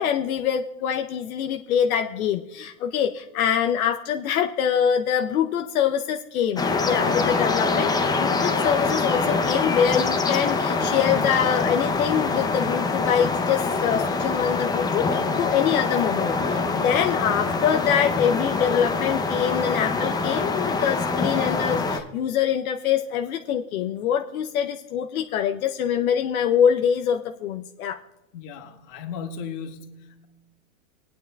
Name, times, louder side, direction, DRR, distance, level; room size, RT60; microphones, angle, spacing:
voice 1, 0.0-28.0, left 8 dB, 80° left, 5 dB, 0.7 m, -24 dB
sound 1, 6.6-22.0, left 4 dB, 10° left, 0.6 m, -24 dB
voice 2, 28.3-30.3, left 6 dB, 45° left, 4 dB, 1.8 m, -36 dB
20.0 x 9.5 x 2.3 m, 1.0 s
hypercardioid pair, 115°, 42 cm